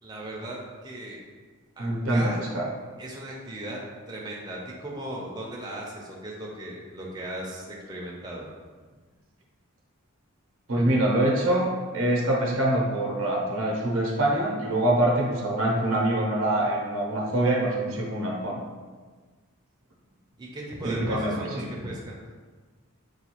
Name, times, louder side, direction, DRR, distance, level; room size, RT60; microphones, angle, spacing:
voice 1, 0.0-1.2 1.8-2.4 3.0-3.8 4.1-8.5 20.4-22.2, right 1 dB, 20° right, -4 dB, 0.5 m, -37 dB
voice 2, 1.8-2.6 10.7-11.7 11.9-18.6 20.8-21.7, right 1 dB, 70° right, -2 dB, 0.7 m, -25 dB
4.7 x 2.3 x 2.9 m, 1.4 s
head